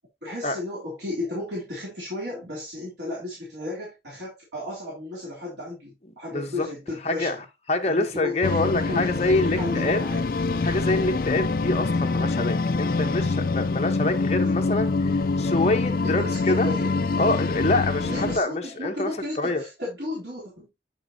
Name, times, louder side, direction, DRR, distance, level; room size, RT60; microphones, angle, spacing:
voice 1, 0.2-7.4 7.9-10.3 16.0-16.9 18.0-20.7, left 2 dB, 80° right, 3.5 m, -34 dB
voice 2, 6.3-6.7 7.0-7.3 7.7-10.0 10.6-14.9 15.4-16.7 17.2-19.1 19.4-19.6, left 2 dB, 35° left, 1.2 m, -25 dB
sound 1, 8.4-18.4, left 3 dB, 55° left, 0.4 m, -25 dB
8.1 x 6.9 x 2.8 m
head